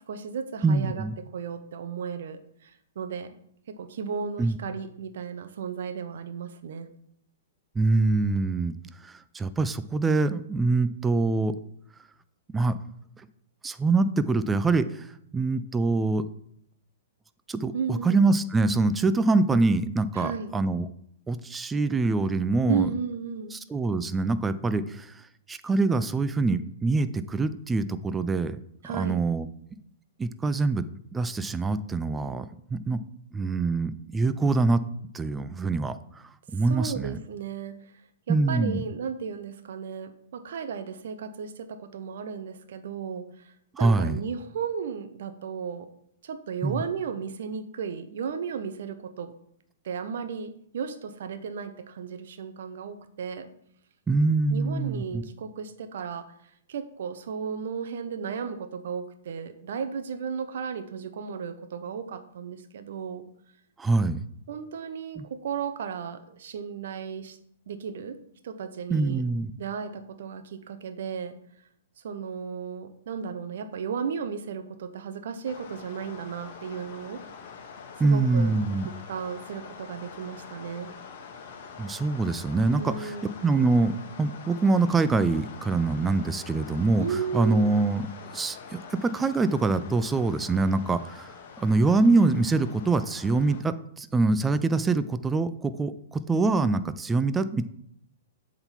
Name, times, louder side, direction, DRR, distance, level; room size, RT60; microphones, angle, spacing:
voice 1, 0.0-1.1 1.3-3.3 3.7-6.9 17.7-18.2 20.1-20.5 22.7-23.5 28.8-29.2 36.7-37.9 38.3-45.9 46.2-49.3 49.8-53.5 54.5-56.3 56.7-63.2 64.5-67.4 67.7-68.2 68.4-69.2 69.6-71.4 72.0-77.2 78.0-78.5 78.8-80.9 82.8-83.3 87.0-87.6, right 6 dB, 65° right, 10 dB, 0.9 m, -34 dB
voice 2, 0.6-1.1 4.4-4.6 7.8-8.7 9.0-11.5 12.5-12.8 13.6-15.1 15.3-16.2 17.5-20.9 21.3-22.9 23.5-25.2 25.5-28.6 28.8-29.5 30.2-30.8 31.1-33.0 33.3-34.8 35.1-36.0 36.5-37.2 38.3-38.8 43.7-44.2 46.6-46.8 54.1-55.2 63.8-64.2 65.2-65.3 68.9-69.5 78.0-78.9 81.8-83.1 83.4-87.1 87.3-97.6, right 3 dB, 15° right, 12 dB, 0.5 m, -24 dB
sound 1, 75.4-93.6, left 6 dB, 55° left, 1.2 m, -45 dB
7.9 x 3.9 x 5.7 m, 0.71 s
hypercardioid pair, 115°, 0 cm